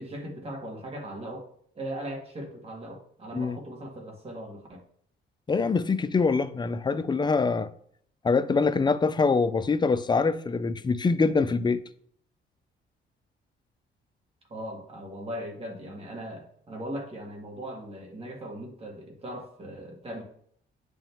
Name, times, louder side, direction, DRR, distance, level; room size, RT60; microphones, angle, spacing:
voice 1, 0.0-1.5 1.8-4.8 14.5-20.2, right 1 dB, 30° right, 1.8 m, -39 dB
voice 2, 5.5-7.7 8.2-11.8, left 4 dB, 20° left, 0.4 m, -24 dB
9.9 x 3.5 x 3.0 m
cardioid pair, 90°, 20 cm